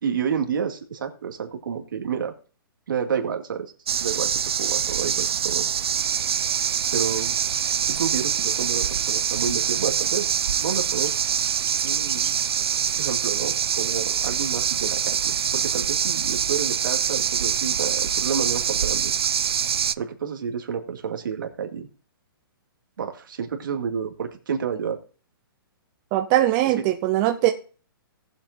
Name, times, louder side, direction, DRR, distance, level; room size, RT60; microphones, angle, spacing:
voice 1, 0.0-2.3 2.9-3.7 4.0-4.3 4.6-5.7 6.9-7.3 7.8-10.3 10.6-11.1 11.8-12.4 12.6-19.1 20.0-21.9 23.0-25.0 26.7-26.8, right 7 dB, 60° right, 4 dB, 2.2 m, -30 dB
sound 1, 3.9-20.0, right 8 dB, 90° right, 0.5 m, -24 dB
voice 2, 26.1-27.5, right 14 dB, 15° right, 5 dB, 0.5 m, -21 dB
18.5 x 7.6 x 2.6 m, 0.38 s
hypercardioid pair, 175°, 12 cm